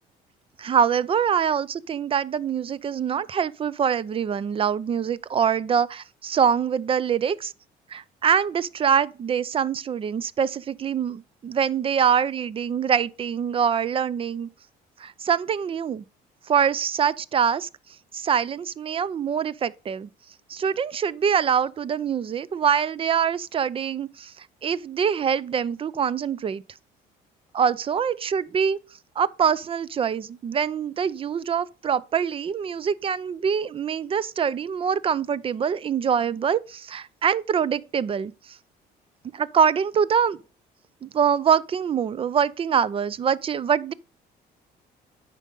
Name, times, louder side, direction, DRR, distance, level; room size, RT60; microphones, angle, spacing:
voice 1, 0.6-7.5 7.9-14.5 15.0-16.0 16.5-17.7 18.1-20.1 20.5-24.3 24.6-26.6 27.5-28.8 29.2-38.3 39.3-40.4 41.0-43.9, right 7 dB, 35° right, 0.4 m, -24 dB
9.0 x 5.2 x 3.8 m
cardioid pair, 110°, 17 cm